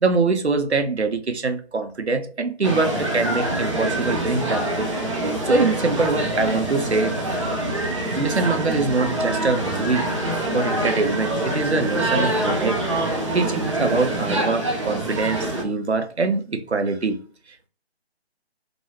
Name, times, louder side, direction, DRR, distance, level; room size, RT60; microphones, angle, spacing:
voice 1, 0.0-4.9 5.4-7.2 8.1-10.0 10.5-17.2, right 3 dB, 90° right, 0.6 m, -23 dB
sound 1, 2.6-15.6, right 1 dB, 30° right, 0.6 m, -25 dB
3.0 x 2.6 x 2.7 m
figure-of-eight pair, 150°, 32 cm